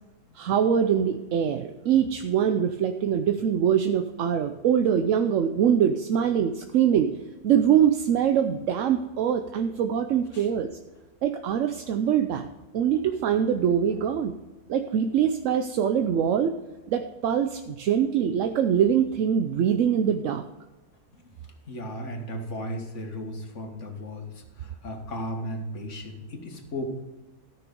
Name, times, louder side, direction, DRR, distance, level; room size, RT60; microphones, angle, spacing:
voice 1, 0.4-7.1 7.4-10.7 11.2-12.5 12.7-14.3 14.7-16.5 16.9-20.4, right 8 dB, 65° right, 7 dB, 0.9 m, -23 dB
voice 2, 21.7-24.3 24.6-26.9, equal, 50° left, 3 dB, 1.9 m, -35 dB
13.5 x 6.1 x 5.2 m, 1.1 s
omnidirectional pair, 1.6 m